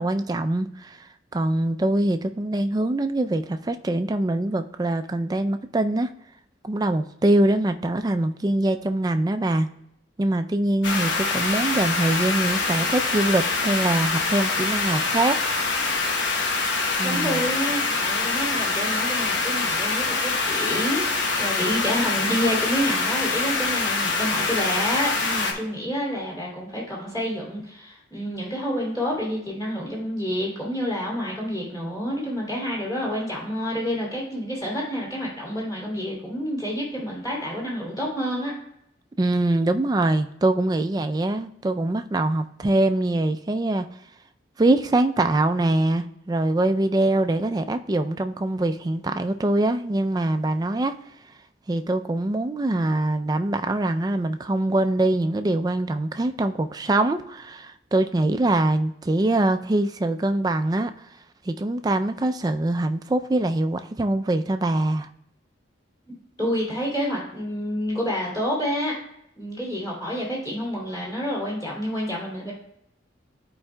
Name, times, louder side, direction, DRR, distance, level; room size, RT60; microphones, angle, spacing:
voice 1, 0.0-6.1 6.6-9.7 10.2-15.4 17.0-17.5 39.2-43.9 44.6-51.0 51.7-60.9 61.5-65.1, right 2 dB, 20° right, 8 dB, 0.3 m, -23 dB
sound 1, 10.8-25.5, left 3 dB, 80° left, 1.0 m, -25 dB
voice 2, 17.0-38.5 66.4-68.9 69.4-72.5, equal, 25° left, -5 dB, 2.7 m, -28 dB
11.5 x 4.7 x 2.2 m, 0.78 s
head